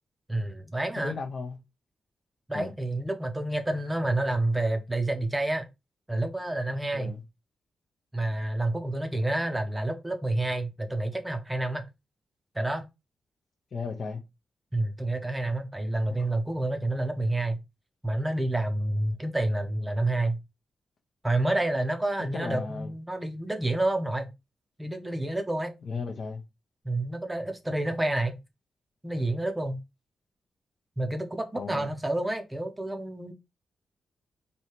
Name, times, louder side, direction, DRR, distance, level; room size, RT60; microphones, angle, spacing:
voice 1, 0.3-1.2 2.5-5.6 6.1-7.1 8.1-11.8 12.5-12.8 14.7-17.6 18.0-20.4 21.2-24.3 24.8-25.7 26.8-28.4 29.0-29.8 31.0-33.3, right 2 dB, 10° right, 0.6 m, -29 dB
voice 2, 1.0-1.6 2.5-2.7 6.9-7.2 13.7-14.2 16.1-16.3 22.2-22.9 25.8-26.4 31.5-31.9, left 4 dB, 55° left, 0.7 m, -35 dB
3.1 x 2.8 x 4.4 m
wide cardioid pair, 115°, 0 cm